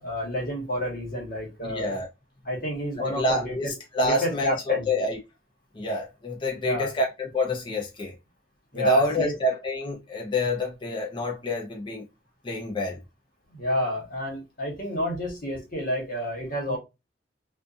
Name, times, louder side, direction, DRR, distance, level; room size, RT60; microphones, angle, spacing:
voice 1, 0.0-1.9 2.4-3.7 4.0-4.9 6.6-6.9 8.7-9.4 13.5-16.8, equal, 55° left, 1.2 m, -30 dB
voice 2, 1.6-2.1 3.1-5.2 5.7-8.1 8.7-12.0 12.4-13.0 16.7-16.8, left 1 dB, 30° left, 0.5 m, -27 dB
2.5 x 2.4 x 2.3 m
head